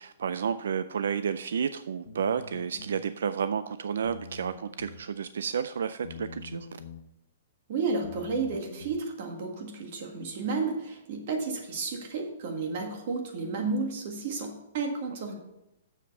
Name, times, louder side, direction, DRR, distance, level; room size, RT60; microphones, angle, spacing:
voice 1, 0.0-6.7, right 7 dB, 80° right, 13 dB, 0.3 m, -31 dB
sound 1, 2.1-3.0 4.0-5.0 6.0-7.0 8.0-9.0, left 5 dB, 85° left, 0.9 m, -45 dB
voice 2, 7.7-15.3, right 4 dB, 40° right, 2 dB, 1.7 m, -32 dB
7.2 x 6.7 x 5.4 m, 0.88 s
hypercardioid pair, 175°, 0 cm